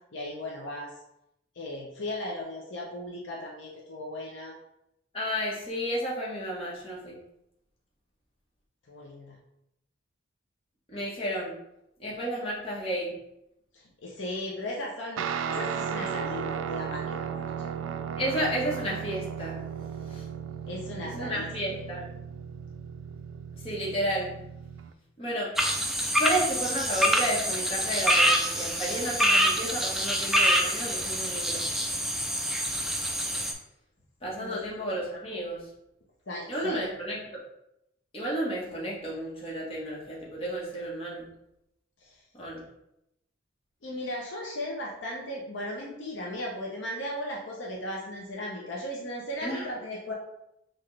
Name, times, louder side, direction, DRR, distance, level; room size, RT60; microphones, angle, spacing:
voice 1, 0.1-0.9 1.5-4.5 8.9-9.4 13.7-15.2 15.5-17.7 20.7-22.1 34.4-34.6 36.3-36.8 42.0-42.2 43.8-50.1, left 1 dB, 65° left, -2 dB, 0.8 m, -37 dB
voice 2, 5.1-7.2 10.9-11.5 12.0-13.2 18.2-19.6 20.1-20.2 21.1-22.0 23.5-24.3 25.2-25.5 26.2-31.6 34.2-35.7 36.5-37.2 38.1-41.3 42.3-42.7 49.4-49.7, right 1 dB, 30° left, -5 dB, 1.4 m, -32 dB
Guitar, 15.2-24.9, right 7 dB, 80° right, 0.3 m, -35 dB
sound 1, 25.6-33.5, equal, ahead, 0.4 m, -26 dB
5.8 x 2.6 x 3.3 m, 0.84 s
head